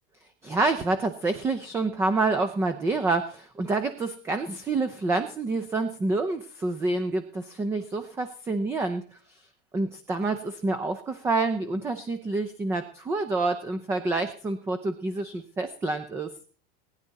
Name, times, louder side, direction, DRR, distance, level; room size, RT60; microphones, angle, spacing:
voice 1, 0.4-9.0 9.3-9.4 9.7-16.3, right 3 dB, 10° right, 11 dB, 0.5 m, -28 dB
19.5 x 10.5 x 4.1 m, 0.44 s
supercardioid pair, 170°, 30 cm